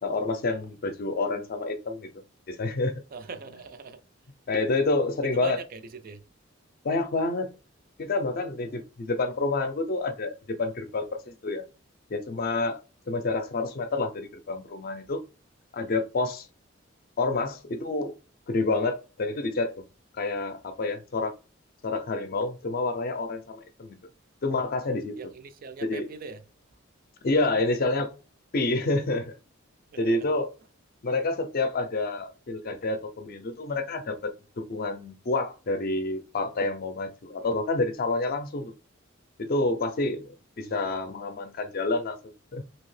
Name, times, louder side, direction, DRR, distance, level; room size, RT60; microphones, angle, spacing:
voice 1, 0.0-2.1 2.5-3.0 4.5-5.6 6.8-7.5 8.0-11.6 12.1-12.8 13.1-15.2 15.7-16.5 17.2-18.1 18.5-19.8 20.2-21.3 21.8-24.0 24.4-25.2 25.8-26.1 27.2-28.2 28.5-29.3 30.0-30.5 31.0-38.7 39.4-42.6, left 2 dB, 45° left, 0.5 m, -28 dB
voice 2, 3.1-4.0 5.2-6.2 25.2-26.4 29.9-30.2 40.6-40.8, right 5 dB, 45° right, 0.3 m, -41 dB
2.8 x 2.7 x 3.2 m
head